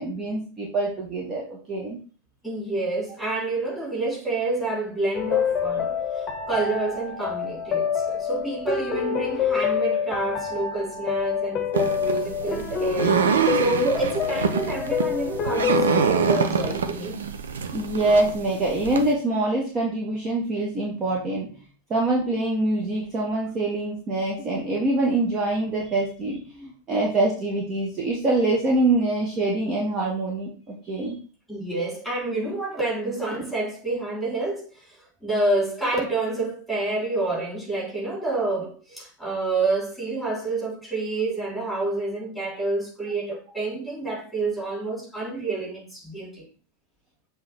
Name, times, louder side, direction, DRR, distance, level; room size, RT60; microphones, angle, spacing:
voice 1, 0.0-2.0 17.7-21.5 21.9-31.2, right 2 dB, 30° right, 1.4 m, -25 dB
voice 2, 2.4-17.2 31.5-34.8 35.2-46.5, right 2 dB, ahead, 3.5 m, -28 dB
sound 1, 5.1-16.3, left 7 dB, 25° left, 1.0 m, -27 dB
sound 2, 11.7-19.1, right 6 dB, 65° right, 0.6 m, -26 dB
7.4 x 3.3 x 4.4 m
figure-of-eight pair, 90°, 0 cm